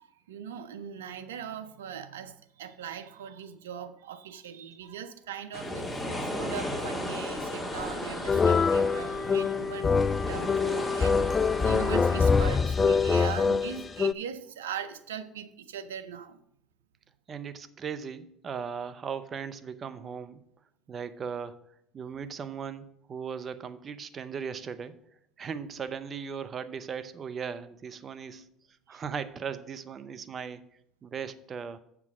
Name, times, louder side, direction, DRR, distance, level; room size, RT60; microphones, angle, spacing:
voice 1, 0.0-11.2 11.6-16.4 28.9-29.0, right 8 dB, 90° right, 0.6 m, -40 dB
sound 1, 5.5-12.6, left 1 dB, 10° left, 2.1 m, -35 dB
sound 2, 8.3-14.1, left 5 dB, 30° left, 0.3 m, -25 dB
voice 2, 17.3-20.4 20.9-21.6 21.9-24.9 25.4-28.4 28.9-30.6 31.0-31.8, right 6 dB, 40° right, 0.8 m, -37 dB
7.4 x 6.0 x 6.1 m
hypercardioid pair, 75°, 0 cm